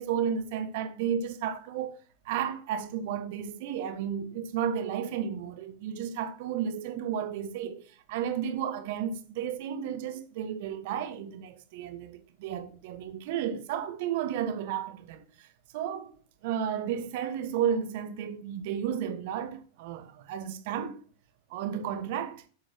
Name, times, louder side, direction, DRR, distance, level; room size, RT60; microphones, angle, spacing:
voice 1, 0.0-1.9 2.2-15.5 15.7-16.1 16.4-21.0 21.5-22.4, right 8 dB, 55° right, 1.4 m, -33 dB
8.5 x 7.1 x 3.0 m
figure-of-eight pair, 95°, 0 cm